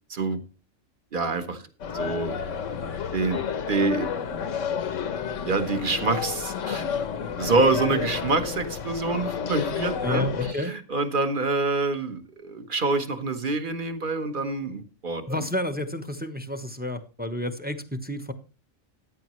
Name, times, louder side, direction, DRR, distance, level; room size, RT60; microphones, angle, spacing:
voice 1, 0.1-0.4 1.1-1.7 1.9-2.4 3.1-4.2 5.4-6.9 7.4-15.2, right 3 dB, 40° right, 8 dB, 1.4 m, -26 dB
sound 1, 1.8-10.5, left 7 dB, 65° left, 1.2 m, -30 dB
voice 2, 10.0-10.8 15.3-18.3, left 1 dB, 10° right, 9 dB, 0.8 m, -30 dB
14.5 x 10.0 x 3.1 m, 0.35 s
omnidirectional pair, 1.4 m